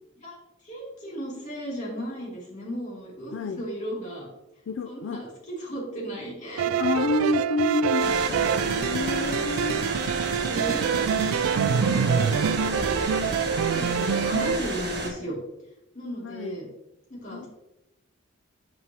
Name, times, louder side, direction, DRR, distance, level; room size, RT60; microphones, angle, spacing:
voice 1, 0.6-4.3 4.8-6.7 10.4-11.1 11.5-13.0 13.3-15.4 15.9-16.7 17.1-17.5, right 1 dB, 35° left, -4 dB, 2.6 m, -35 dB
voice 2, 4.7-5.2 6.8-9.9 16.2-16.6 17.3-17.5, left 3 dB, 65° left, 7 dB, 0.4 m, -29 dB
sound 1, 6.6-14.6, right 7 dB, 85° right, 0.3 m, -25 dB
sound 2, 8.0-15.1, right 1 dB, 50° right, 1.5 m, -32 dB
8.8 x 5.0 x 2.9 m, 0.91 s
head